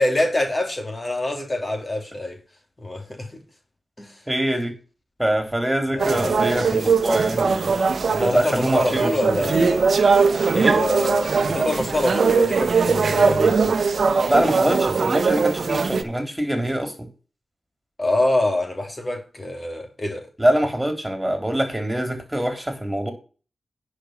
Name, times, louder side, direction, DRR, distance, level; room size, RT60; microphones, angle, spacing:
voice 1, 0.0-2.4 2.8-3.4 4.0-4.2 5.9-6.9 8.1-9.9 10.5-13.8 18.0-20.3, left 1 dB, 35° left, 3.0 m, -26 dB
voice 2, 4.3-4.7 5.2-7.8 8.2-9.1 10.5-10.8 14.3-17.1 20.4-23.1, right 1 dB, 10° right, 3.8 m, -23 dB
sound 1, 6.0-16.0, right 5 dB, 65° right, 1.1 m, -20 dB
10.5 x 5.5 x 5.9 m
cardioid pair, 50°, 0 cm